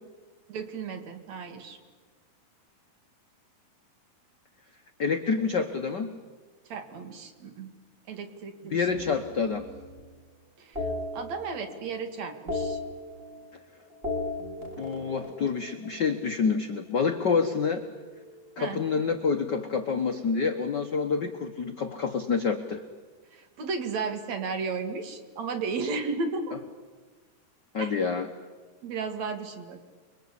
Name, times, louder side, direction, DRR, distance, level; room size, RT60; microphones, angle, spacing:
voice 1, 0.5-1.8 6.7-7.7 8.1-9.2 10.6-10.9 11.1-12.8 18.6-18.8 23.3-26.6 27.8-28.0 28.8-29.8, right 4 dB, 55° right, 7 dB, 3.2 m, -34 dB
voice 2, 5.0-6.1 8.7-9.7 14.8-17.8 18.6-22.8 27.7-28.3, left 5 dB, 75° left, 6 dB, 0.9 m, -27 dB
sound 1, 8.9-10.1 10.8-11.9 12.2-13.6 13.9-16.3 17.5-19.2, left 2 dB, 15° right, 3.5 m, -37 dB
29.0 x 23.0 x 8.4 m, 1.4 s
omnidirectional pair, 3.9 m